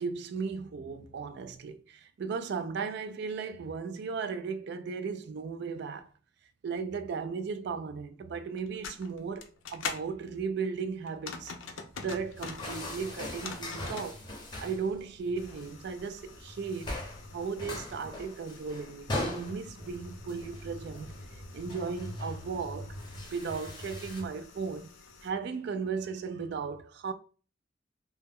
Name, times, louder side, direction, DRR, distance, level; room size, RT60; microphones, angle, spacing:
voice 1, 0.0-6.1 6.6-14.2 14.6-17.0 17.3-21.1 21.5-23.0 23.3-24.9 25.2-27.1, right 5 dB, 60° right, 0.3 m, -36 dB
sound 1, 8.6-10.1 11.1-12.7 13.1-14.1 15.4-25.3, left 6 dB, 90° left, 0.4 m, -46 dB
sound 2, 11.9-24.3, left 1 dB, 80° right, 0.9 m, -47 dB
sound 3, 12.4-14.9 15.2-15.7 16.2-16.4 16.7-24.2, left 2 dB, 25° left, 0.6 m, -40 dB
2.1 x 2.0 x 3.4 m
head